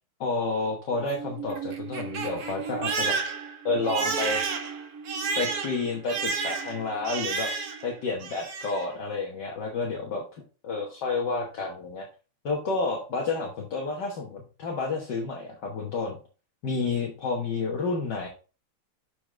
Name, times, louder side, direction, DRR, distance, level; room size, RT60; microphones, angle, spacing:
voice 1, 0.2-3.2 3.7-4.4 5.4-7.5 7.8-10.2 10.6-12.1 12.4-16.2 16.6-18.3, left 3 dB, 60° left, -1 dB, 1.8 m, -30 dB
Crying sobbing, 0.9-7.9 8.2-8.8, right 5 dB, 55° right, 1.4 m, -31 dB
7.0 x 4.9 x 3.7 m, 0.34 s
omnidirectional pair, 2.2 m